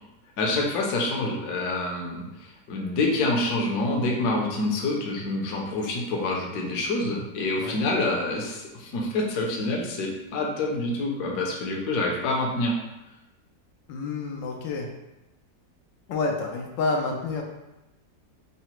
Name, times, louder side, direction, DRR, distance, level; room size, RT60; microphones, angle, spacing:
voice 1, 0.4-12.8, left 2 dB, 65° left, -1 dB, 1.1 m, -27 dB
voice 2, 13.9-14.9 16.1-17.4, left 3 dB, 85° left, 1 dB, 1.3 m, -28 dB
3.9 x 2.1 x 4.3 m, 0.97 s
omnidirectional pair, 1.9 m